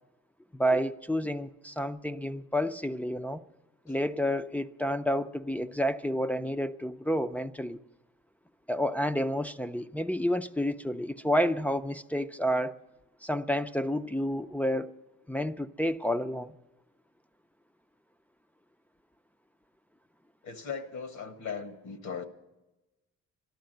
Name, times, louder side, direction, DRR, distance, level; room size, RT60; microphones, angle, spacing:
voice 1, 0.5-3.4 3.9-7.8 8.7-12.8 13.2-14.9 15.3-16.5, equal, 5° left, 0.5 m, -30 dB
voice 2, 20.4-22.2, left 6 dB, 65° left, 1.5 m, -38 dB
13.5 x 12.0 x 7.8 m
cardioid pair, 90°, 30 cm